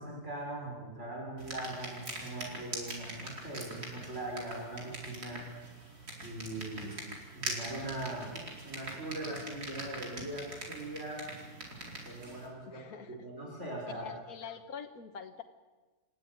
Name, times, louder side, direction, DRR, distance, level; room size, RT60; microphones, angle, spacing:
voice 1, 0.0-5.4 6.2-6.9 7.4-11.3 12.1-14.1, right 1 dB, 50° right, -2 dB, 6.3 m, -41 dB
sound 1, 1.4-12.5, right 2 dB, 90° right, 5.3 m, -43 dB
voice 2, 12.7-13.2 13.9-15.4, left 7 dB, 70° left, 5 dB, 1.7 m, -45 dB
28.0 x 15.5 x 9.6 m, 1.3 s
omnidirectional pair, 1.6 m